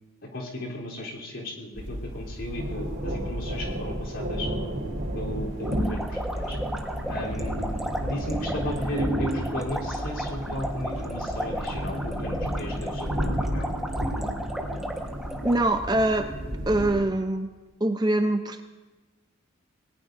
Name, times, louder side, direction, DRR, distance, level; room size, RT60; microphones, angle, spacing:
voice 1, 0.3-4.5 5.1-6.1 6.3-6.6 7.1-7.7 8.0-13.8, left 1 dB, 65° left, -3 dB, 3.5 m, -35 dB
sound 1, 1.8-17.0, equal, 60° right, 4.2 m, -32 dB
sound 2, 5.6-15.6, equal, ahead, 1.2 m, -35 dB
voice 2, 15.4-16.3 16.7-17.5 17.8-18.6, right 1 dB, 20° right, 7 dB, 0.6 m, -24 dB
27.0 x 19.0 x 2.6 m, 1.2 s
head